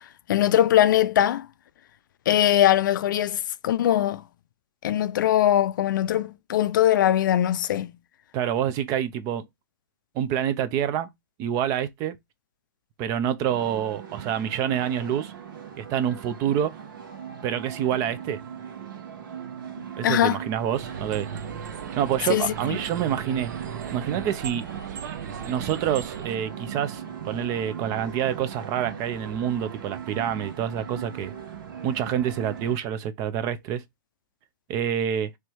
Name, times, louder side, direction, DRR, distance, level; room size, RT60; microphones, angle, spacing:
voice 1, 0.3-1.5 2.3-4.2 4.8-7.9 20.0-20.4 22.3-22.5, left 12 dB, 65° left, 0.5 m, -21 dB
voice 2, 8.3-9.5 10.1-11.1 11.4-12.2 13.0-15.3 15.8-16.8 17.4-18.4 20.0-21.3 22.0-23.5 23.9-24.6 25.4-31.3 31.8-33.8 34.7-35.3, right 9 dB, 30° right, 0.6 m, -27 dB
Indoor funfair Ambiance, 13.5-32.8, right 8 dB, 75° right, 1.5 m, -39 dB
sound 1, 20.7-26.4, right 7 dB, 55° right, 0.9 m, -37 dB
3.4 x 3.1 x 4.5 m
hypercardioid pair, 150°, 11 cm